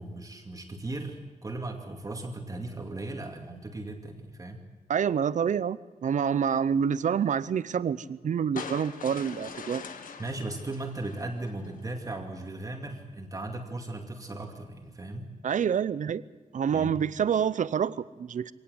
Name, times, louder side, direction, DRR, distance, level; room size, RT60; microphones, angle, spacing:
voice 1, 0.0-4.6 10.2-15.3 16.7-17.0, right 2 dB, 25° right, 3 dB, 2.3 m, -37 dB
voice 2, 4.9-9.8 15.4-16.2 16.5-18.5, right 7 dB, 65° right, 17 dB, 0.7 m, -27 dB
sound 1, 8.6-11.8, left 6 dB, 80° left, 1.8 m, -42 dB
24.5 x 18.0 x 8.0 m, 1.3 s
wide cardioid pair, 155°, 14 cm